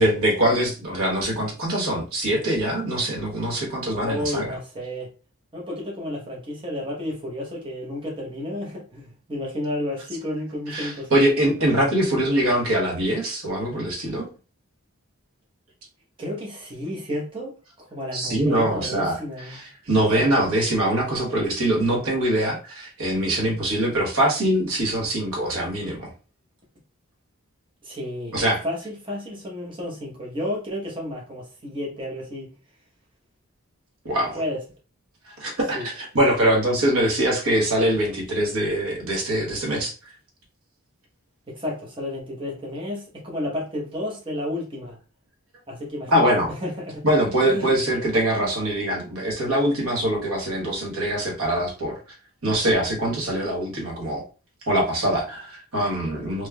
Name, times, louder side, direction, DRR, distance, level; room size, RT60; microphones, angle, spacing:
voice 1, 0.0-4.5 10.7-14.3 18.1-19.2 19.5-26.1 28.3-28.6 34.0-34.4 35.4-39.9 46.1-46.5 47.0-52.0 52.4-54.2 54.7-56.5, right 1 dB, 80° right, -1 dB, 1.2 m, -23 dB
voice 2, 3.9-5.1 5.5-11.2 16.2-17.5 17.8-19.6 20.1-20.2 27.8-28.3 28.6-32.5 34.3-34.6 35.7-35.9 41.5-45.0 45.7-47.0 47.5-47.7, left 1 dB, 25° right, -3 dB, 0.9 m, -31 dB
3.5 x 3.0 x 2.2 m, 0.35 s
head